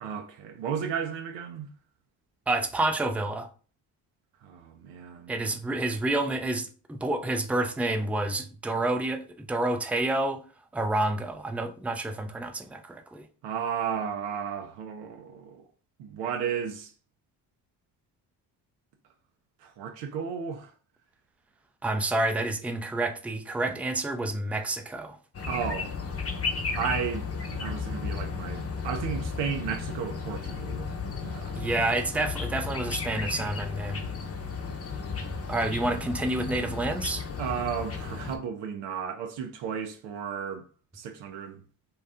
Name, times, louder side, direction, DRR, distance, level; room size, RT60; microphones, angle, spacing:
voice 1, 0.0-1.7 4.4-5.3 13.4-15.7 16.0-16.9 19.6-20.7 25.5-25.9 26.7-30.9 31.2-31.6 37.4-40.7 40.9-41.6, right 7 dB, 85° right, 0.5 m, -33 dB
voice 2, 2.5-3.5 5.3-10.4 10.7-13.2 21.8-25.2 31.6-34.1 35.5-37.2, right 2 dB, 5° right, 0.4 m, -29 dB
sound 1, 25.3-38.4, left 5 dB, 35° left, 0.7 m, -34 dB
2.7 x 2.2 x 3.5 m
supercardioid pair, 65°, 41 cm